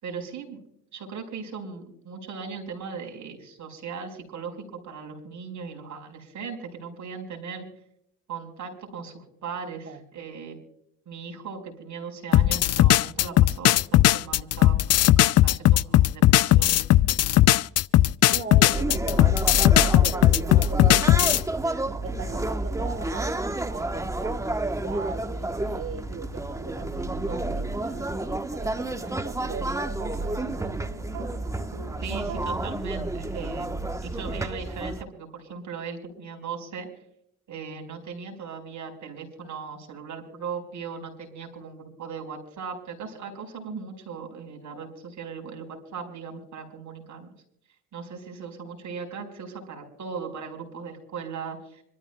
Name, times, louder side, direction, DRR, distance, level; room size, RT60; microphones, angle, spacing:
voice 1, 0.0-0.6 0.9-7.7 8.3-10.6 11.0-16.8 32.0-36.9 37.5-47.3 47.9-51.8, right 5 dB, 60° right, 3 dB, 4.7 m, -38 dB
sound 1, 12.3-21.4, left 14 dB, 50° left, 0.4 m, -18 dB
voice 2, 18.3-21.5 21.9-23.4 23.7-31.0, right 5 dB, 40° right, 6 dB, 1.5 m, -40 dB
sound 2, 18.7-35.0, right 2 dB, 10° right, 1.0 m, -30 dB
sound 3, 27.1-32.7, right 4 dB, 80° right, 3.4 m, -45 dB
26.5 x 13.5 x 2.2 m, 0.72 s
supercardioid pair, 65°, 33 cm